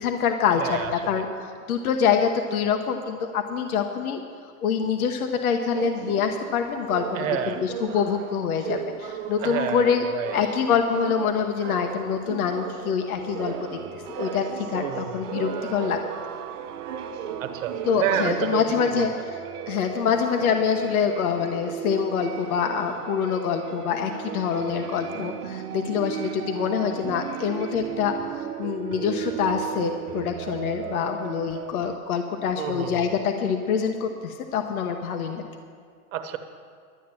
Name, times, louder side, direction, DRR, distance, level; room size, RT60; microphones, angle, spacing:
voice 1, 0.0-7.1 7.5-13.5 14.1-16.0 17.8-19.1 19.7-35.4, left 7 dB, 75° left, 5 dB, 1.1 m, -25 dB
voice 2, 0.6-1.2 7.1-7.6 9.4-10.3 14.8-15.3 17.4-19.1 32.6-33.1 36.1-36.4, right 9 dB, 60° right, 8 dB, 1.2 m, -29 dB
sound 1, 5.7-18.8, right 8 dB, 35° right, 0.8 m, -37 dB
sound 2, 13.0-32.0, right 10 dB, 85° right, 1.0 m, -36 dB
12.0 x 9.2 x 7.6 m, 2.1 s
supercardioid pair, 160°, 44 cm